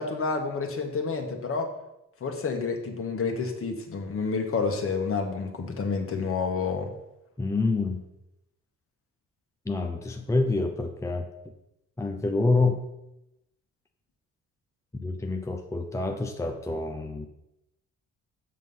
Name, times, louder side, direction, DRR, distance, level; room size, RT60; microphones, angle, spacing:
voice 1, 0.0-1.7 2.2-6.9, left 4 dB, 45° left, 3 dB, 1.6 m, -29 dB
voice 2, 7.4-8.0 9.6-11.3 12.0-12.8 14.9-17.3, left 3 dB, 10° left, 4 dB, 0.7 m, -27 dB
7.4 x 6.1 x 5.6 m, 0.89 s
cardioid pair, 90°, 30 cm